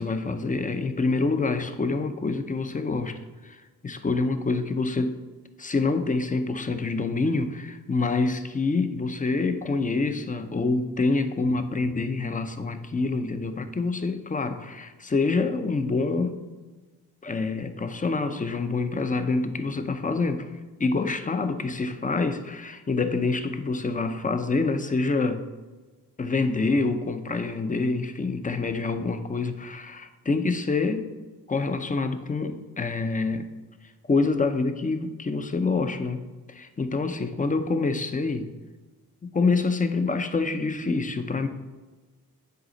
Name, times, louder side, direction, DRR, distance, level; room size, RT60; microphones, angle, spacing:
voice 1, 0.0-3.6 3.8-5.2 5.6-16.4 17.2-20.5 20.8-25.4 26.2-31.1 31.5-33.5 34.1-36.2 36.5-38.5 39.2-41.5, left 3 dB, 20° left, 9 dB, 0.6 m, -26 dB
9.4 x 4.1 x 3.9 m, 1.3 s
cardioid pair, 70°, 37 cm